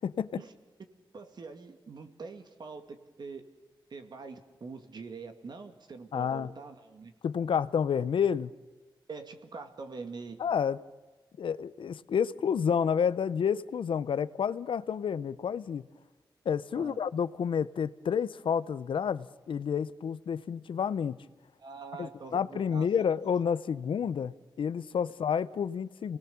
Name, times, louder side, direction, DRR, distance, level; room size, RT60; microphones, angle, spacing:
voice 1, 0.0-0.4 6.1-6.5 7.2-8.5 10.4-10.8 11.4-15.8 16.5-21.2 22.0-26.2, left 7 dB, 90° left, 16 dB, 0.7 m, -30 dB
voice 2, 1.1-3.4 3.9-7.1 9.1-10.4 16.7-17.0 21.6-22.9 23.2-23.3 25.0-25.1, right 4 dB, 60° right, 7 dB, 2.2 m, -44 dB
29.0 x 19.0 x 7.1 m, 1.3 s
wide cardioid pair, 140°, 8 cm